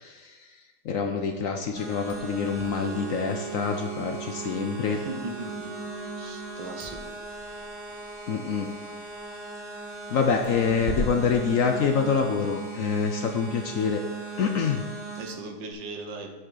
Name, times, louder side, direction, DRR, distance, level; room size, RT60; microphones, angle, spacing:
voice 1, 0.0-5.0 8.3-8.7 10.1-14.0 14.4-14.8, left 6 dB, 65° left, 4 dB, 0.8 m, -26 dB
sound 1, 1.8-15.3, right 4 dB, 15° right, 3.0 m, -38 dB
sound 2, 1.9-12.4, right 1 dB, 30° right, 0.7 m, -42 dB
Wind instrument woodwind instrument, 2.7-7.0, right 6 dB, 70° right, 1.4 m, -42 dB
voice 2, 5.0-5.7 6.2-7.1 15.2-16.3, right 3 dB, 85° right, 4 dB, 1.8 m, -38 dB
10.5 x 6.3 x 3.9 m, 1.3 s
omnidirectional pair, 1.9 m